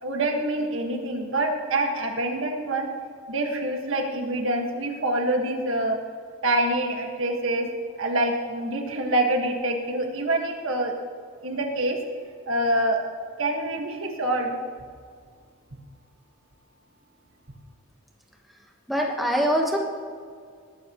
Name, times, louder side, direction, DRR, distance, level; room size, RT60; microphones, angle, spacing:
voice 1, 0.0-2.9 3.3-6.0 6.4-7.7 8.0-10.9 11.4-12.0 12.5-13.0 13.4-14.6, right 1 dB, 70° right, 2 dB, 1.7 m, -26 dB
voice 2, 18.9-19.8, equal, ahead, -1 dB, 1.3 m, -23 dB
19.5 x 13.0 x 3.1 m, 2.1 s
head